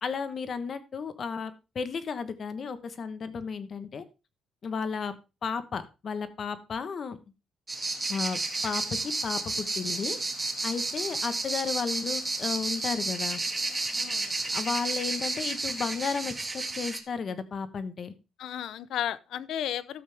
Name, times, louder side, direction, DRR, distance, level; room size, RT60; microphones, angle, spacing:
voice 1, 0.0-4.0 4.6-5.1 5.4-7.2 8.1-8.8 9.2-10.2 10.6-13.4 14.5-18.1, left 5 dB, 50° left, 1.2 m, -33 dB
sound 1, 7.7-17.0, right 2 dB, 20° right, 1.8 m, -32 dB
voice 2, 14.0-14.3 18.4-20.0, left 10 dB, 80° left, 0.7 m, -34 dB
12.5 x 7.5 x 3.5 m
cardioid pair, 95°, 0 cm